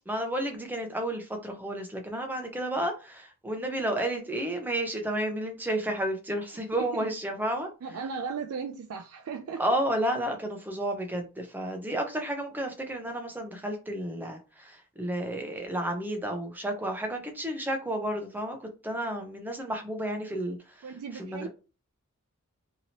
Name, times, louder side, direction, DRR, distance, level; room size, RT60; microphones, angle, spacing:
voice 1, 0.1-7.7 9.6-18.6 18.8-20.6 21.1-21.5, right 1 dB, 10° right, 0.6 m, -31 dB
voice 2, 6.7-7.1 7.8-9.6 20.8-21.5, right 5 dB, 80° right, 0.4 m, -36 dB
2.8 x 2.8 x 2.8 m
head